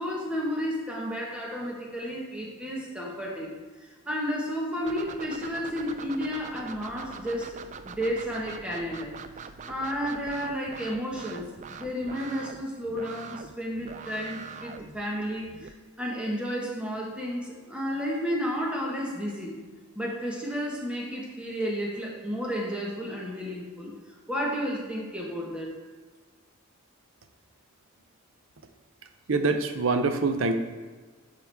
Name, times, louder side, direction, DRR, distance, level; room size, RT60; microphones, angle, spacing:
voice 1, 0.0-9.1 9.7-19.5 19.9-23.9 24.3-25.8, equal, 5° right, -2 dB, 1.3 m, -32 dB
sound 1, 4.9-15.7, right 5 dB, 35° right, 0.3 m, -43 dB
voice 2, 29.3-30.6, right 3 dB, 65° right, 7 dB, 0.6 m, -25 dB
10.0 x 4.8 x 3.5 m, 1.4 s
head